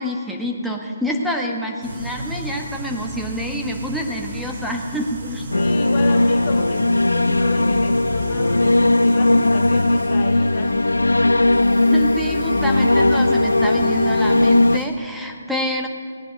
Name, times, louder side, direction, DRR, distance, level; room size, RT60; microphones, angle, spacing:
voice 1, 0.0-5.4 11.8-15.9, equal, ahead, 0 dB, 1.3 m, -27 dB
sound 1, 1.8-14.9, right 1 dB, 55° right, 2.5 m, -34 dB
voice 2, 5.2-10.9, left 8 dB, 35° left, 6 dB, 0.7 m, -33 dB
sound 2, 5.5-14.8, left 2 dB, 85° left, 0.3 m, -17 dB
18.0 x 9.8 x 5.2 m, 2.1 s
figure-of-eight pair, 145°, 0 cm